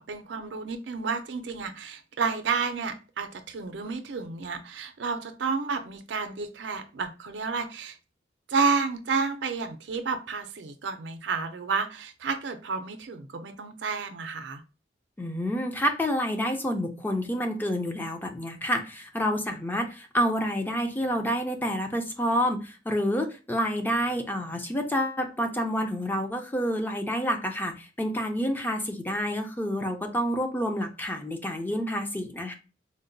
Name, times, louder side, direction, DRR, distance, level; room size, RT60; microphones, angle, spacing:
voice 1, 0.0-8.0 8.5-14.6, right 4 dB, 80° right, 8 dB, 0.5 m, -31 dB
voice 2, 15.2-32.5, equal, 10° left, 4 dB, 0.4 m, -28 dB
3.8 x 2.1 x 2.5 m, 0.33 s
head